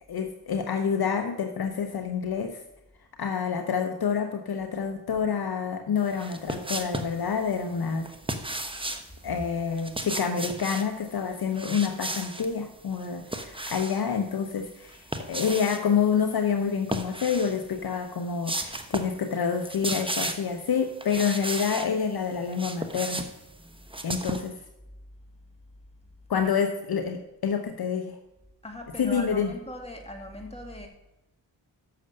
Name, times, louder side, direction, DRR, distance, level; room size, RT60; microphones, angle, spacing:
voice 1, 0.1-2.6 3.2-8.1 9.2-23.2 24.0-24.6 26.3-28.2 29.0-29.5, left 6 dB, 55° left, 7 dB, 0.9 m, -28 dB
sound 1, 6.1-7.2 8.0-9.1 9.7-10.9 11.5-12.5 12.9-14.1 14.9-15.8 16.8-17.6 18.0-18.1 18.4-19.2 19.5-20.5 21.0-21.9 22.3-24.5, right 1 dB, 10° right, 1.0 m, -34 dB
voice 2, 28.6-30.9, left 1 dB, 15° left, 2 dB, 2.1 m, -39 dB
6.7 x 6.5 x 6.5 m, 0.91 s
cardioid pair, 45°, 44 cm